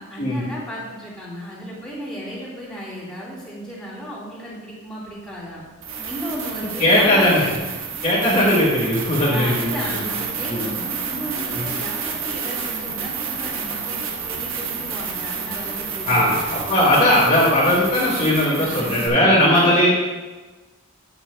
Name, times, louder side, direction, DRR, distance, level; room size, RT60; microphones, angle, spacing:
voice 1, 0.0-5.6 6.0-7.6 9.2-16.6 18.5-19.8, equal, 5° left, -8 dB, 3.0 m, -34 dB
sound 1, 5.1-5.2 5.8-19.1, right 6 dB, 65° right, 1.3 m, -30 dB
voice 2, 6.8-7.4 8.0-10.0 10.5-10.6 11.5-11.6 16.1-19.9, left 1 dB, 30° left, -6 dB, 2.0 m, -18 dB
12.0 x 8.9 x 2.3 m, 1.2 s
head